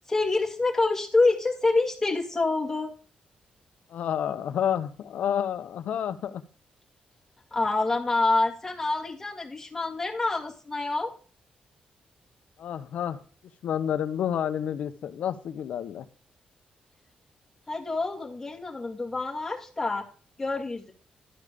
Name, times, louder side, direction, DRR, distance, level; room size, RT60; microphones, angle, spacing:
voice 1, 0.1-2.9 7.5-11.1 17.7-20.0 20.4-20.9, left 3 dB, 15° left, -1 dB, 2.4 m, -26 dB
voice 2, 3.9-6.4 12.6-13.2 13.6-16.1, left 9 dB, 70° left, 10 dB, 1.0 m, -29 dB
12.5 x 5.2 x 6.9 m, 0.39 s
wide cardioid pair, 160°, 2 cm